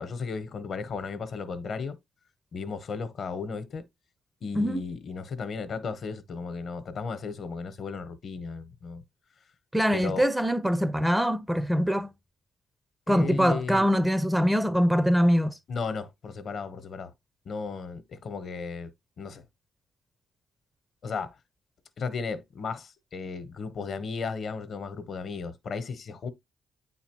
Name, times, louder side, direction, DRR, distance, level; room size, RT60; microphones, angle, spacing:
voice 1, 0.0-2.0 2.5-3.9 4.4-9.0 9.9-10.3 13.1-13.9 15.7-17.1 17.4-19.5 21.0-21.4 22.0-26.3, left 5 dB, 55° left, 0.9 m, -35 dB
voice 2, 9.7-12.1 13.1-15.6, equal, 5° right, 0.5 m, -23 dB
8.6 x 4.1 x 2.9 m
cardioid pair, 90°, 0 cm